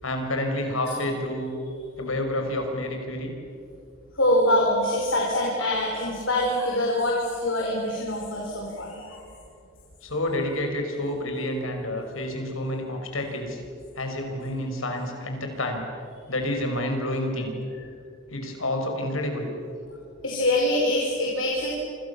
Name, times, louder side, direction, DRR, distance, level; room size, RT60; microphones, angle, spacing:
voice 1, 0.0-1.5 2.0-3.3 10.0-13.6 14.0-15.8 16.3-17.5 18.3-19.5, left 1 dB, 90° left, 4 dB, 5.6 m, -29 dB
voice 2, 4.1-9.3 20.2-21.7, left 1 dB, 70° left, -2 dB, 5.2 m, -24 dB
28.5 x 26.5 x 7.1 m, 2.4 s
head